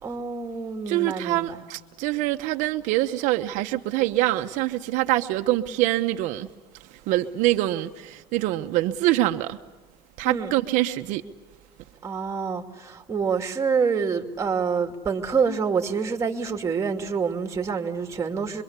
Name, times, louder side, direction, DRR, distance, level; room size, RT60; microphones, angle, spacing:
voice 1, 0.0-1.6 10.2-10.5 12.0-18.6, right 5 dB, 25° right, 2.7 m, -27 dB
voice 2, 0.9-6.5 7.1-9.6 10.2-11.2, right 16 dB, 75° right, 1.0 m, -24 dB
26.0 x 23.5 x 8.2 m
cardioid pair, 135°, 13 cm